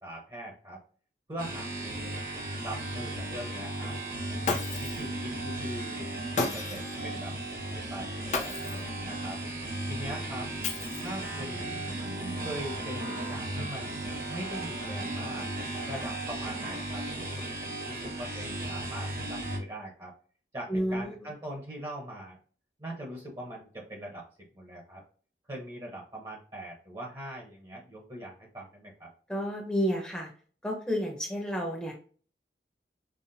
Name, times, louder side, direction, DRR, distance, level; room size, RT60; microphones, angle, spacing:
voice 1, 0.0-0.8 1.3-2.1 2.6-4.0 4.8-6.1 6.4-7.3 7.7-9.4 9.9-10.5 11.0-11.8 12.4-15.5 15.8-17.0 17.4-17.6 17.8-20.1 20.5-22.4 22.8-24.3 24.5-25.0 25.5-29.1, right 1 dB, 25° right, -2 dB, 0.9 m, -41 dB
sound 1, 1.4-19.6, right 1 dB, 50° right, 1.2 m, -36 dB
Shatter, 4.4-5.1 6.4-6.9 8.3-8.9 10.6-11.3, left 3 dB, 40° left, 0.6 m, -32 dB
sound 2, 7.1-14.7, right 2 dB, 65° right, 0.6 m, -49 dB
voice 2, 20.7-21.3 29.3-30.3 30.6-31.9, equal, 5° left, 0 dB, 0.8 m, -31 dB
5.7 x 2.0 x 2.7 m, 0.41 s
head